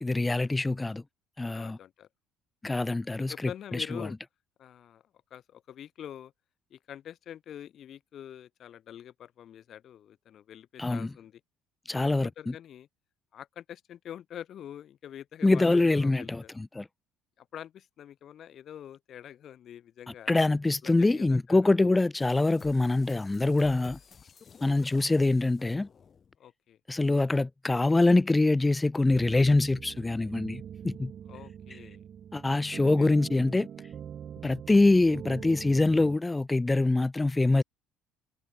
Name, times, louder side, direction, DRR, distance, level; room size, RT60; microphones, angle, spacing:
voice 1, 0.0-1.0 1.4-1.8 2.6-4.1 10.8-11.1 11.9-12.3 15.4-16.9 20.3-24.0 24.6-25.9 26.9-31.1 32.3-33.7 34.4-37.6, left 2 dB, 15° left, 0.4 m, -24 dB
voice 2, 1.5-2.1 3.2-4.1 4.6-5.0 5.3-6.3 6.7-11.4 11.9-12.9 13.3-16.5 17.4-20.3 20.8-21.7 26.4-26.8 31.3-32.0 33.0-33.1, left 10 dB, 55° left, 1.5 m, -45 dB
sound 1, 22.2-26.4, left 6 dB, 40° left, 4.2 m, -53 dB
sound 2, 29.1-36.2, right 9 dB, 50° right, 0.5 m, -43 dB
supercardioid pair, 80°, 0 cm